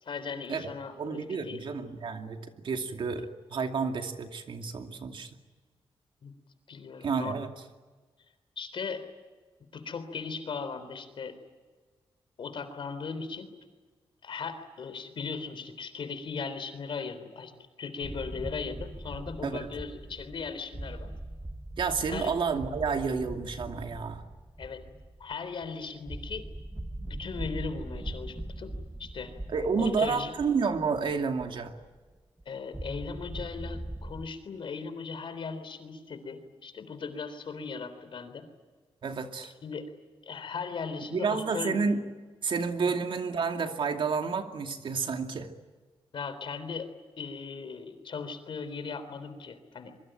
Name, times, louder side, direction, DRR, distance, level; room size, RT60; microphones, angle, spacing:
voice 1, 0.0-1.6 6.2-6.3 6.7-7.3 8.6-9.0 9.7-11.3 12.4-13.5 14.2-17.5 17.8-21.1 22.1-22.3 24.6-24.8 25.2-26.4 27.1-28.7 29.0-29.3 29.8-30.3 32.5-38.5 39.4-39.9 40.2-41.7 42.8-42.9 46.1-46.9 47.2-50.0, left 5 dB, 60° left, 10 dB, 3.7 m, -38 dB
voice 2, 1.0-5.3 7.0-7.5 19.4-19.7 21.8-24.2 29.5-31.7 39.0-39.5 41.1-42.0 42.4-45.5, right 5 dB, 60° right, 5 dB, 2.5 m, -30 dB
sound 1, 18.0-32.1 32.4-32.5 32.7-34.2, right 1 dB, 10° right, 1.3 m, -41 dB
25.0 x 23.5 x 9.1 m, 1.3 s
wide cardioid pair, 160°, 10 cm